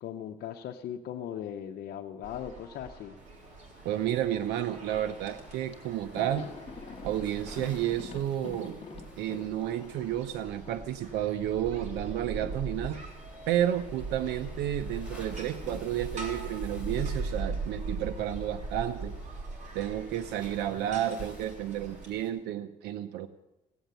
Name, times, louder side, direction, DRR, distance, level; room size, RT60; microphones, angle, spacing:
voice 1, 0.0-3.1, left 10 dB, 65° left, 4 dB, 0.8 m, -38 dB
sound 1, 2.2-22.1, right 3 dB, 45° right, 3.6 m, -41 dB
Waves surf, 3.2-22.3, left 1 dB, 5° right, 4.8 m, -55 dB
voice 2, 3.8-6.5 7.0-8.8 9.2-13.0 13.5-19.1 19.7-23.3, right 11 dB, 85° right, 9 dB, 0.7 m, -31 dB
Thunder, 5.7-14.5 14.8-19.1 19.4-19.5 20.7-21.4, left 4 dB, 35° left, 1.9 m, -49 dB
16.5 x 8.0 x 9.0 m, 1.0 s
cardioid pair, 110°, 17 cm